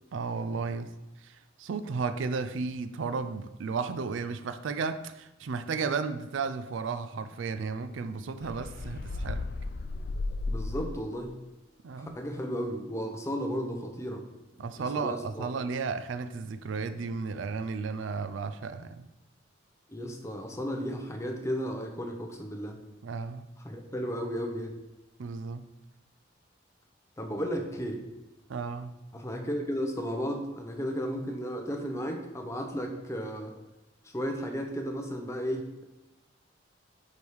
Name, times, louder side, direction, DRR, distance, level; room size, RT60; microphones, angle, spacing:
voice 1, 0.1-0.9 1.2-9.5 11.8-12.2 14.6-19.1 23.0-23.5 25.2-25.7 28.5-29.0, right 4 dB, 75° right, 11 dB, 0.4 m, -34 dB
sound 1, 8.4-11.2, left 3 dB, 50° left, 0.3 m, -34 dB
voice 2, 10.5-11.4 12.0-14.2 14.8-15.5 19.9-22.8 23.6-24.8 27.2-28.0 29.1-33.5 34.1-35.8, equal, 15° left, 3 dB, 0.7 m, -34 dB
5.3 x 4.7 x 4.6 m, 0.99 s
head